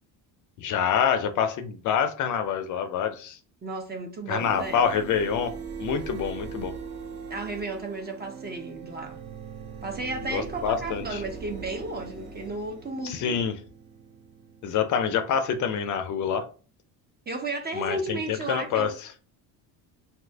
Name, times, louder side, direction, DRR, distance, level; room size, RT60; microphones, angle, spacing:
voice 1, 0.6-3.4 4.3-5.5 5.8-6.7 10.3-11.2 13.0-13.6 14.6-16.4 17.7-18.9, left 7 dB, 45° left, 0.4 m, -26 dB
voice 2, 3.6-4.9 7.3-9.2 9.8-13.4 17.3-18.9, right 2 dB, 25° right, 0.5 m, -33 dB
sound 1, 4.4-16.0, right 6 dB, 60° right, 0.8 m, -41 dB
2.7 x 2.4 x 3.2 m
cardioid pair, 115°, 44 cm